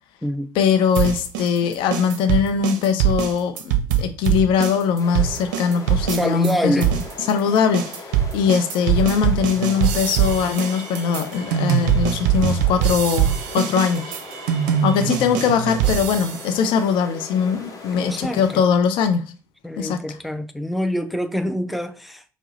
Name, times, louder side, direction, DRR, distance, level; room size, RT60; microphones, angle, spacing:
voice 1, 0.5-7.0 7.3-14.1 14.8-19.3 19.8-20.0, left 7 dB, 60° left, 0.6 m, -21 dB
sound 1, 1.0-6.5 6.8-16.6, right 9 dB, 65° right, 0.5 m, -22 dB
sound 2, 5.0-18.6, left 3 dB, 35° left, 1.1 m, -39 dB
voice 2, 6.1-6.9 15.1-15.2 17.9-18.6 19.6-22.2, equal, ahead, 0.4 m, -26 dB
4.6 x 2.1 x 3.9 m
figure-of-eight pair, 50°, 10 cm